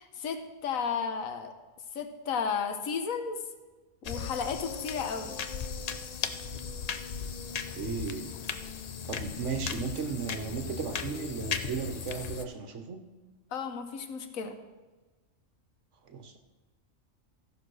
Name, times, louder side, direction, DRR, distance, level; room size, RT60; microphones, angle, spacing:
voice 1, 0.0-1.5 1.9-3.4 4.0-5.4 13.5-14.6, left 6 dB, 90° left, 7 dB, 1.3 m, -33 dB
sound 1, 4.0-12.4, left 6 dB, 60° left, 0.4 m, -37 dB
voice 2, 7.7-8.3 9.1-13.0 16.0-16.4, right 5 dB, 65° right, 7 dB, 1.2 m, -35 dB
14.0 x 5.3 x 6.2 m, 1.3 s
omnidirectional pair, 1.4 m